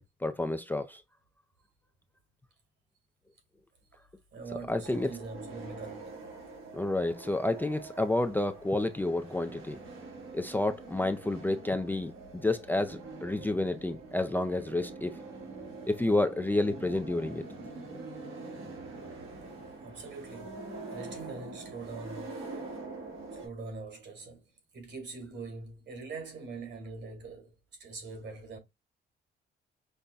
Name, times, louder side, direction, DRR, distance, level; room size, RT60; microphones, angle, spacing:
voice 1, 0.2-1.0 4.7-5.1 6.7-9.8 10.3-15.2 15.9-17.4 17.9-18.0, left 2 dB, 10° left, 0.4 m, -30 dB
voice 2, 4.3-6.2 19.8-22.8 23.3-28.6, right 3 dB, 65° right, 2.1 m, -43 dB
sound 1, 4.8-23.5, right 3 dB, 80° right, 1.6 m, -45 dB
5.4 x 2.1 x 2.4 m
cardioid pair, 90°, 20 cm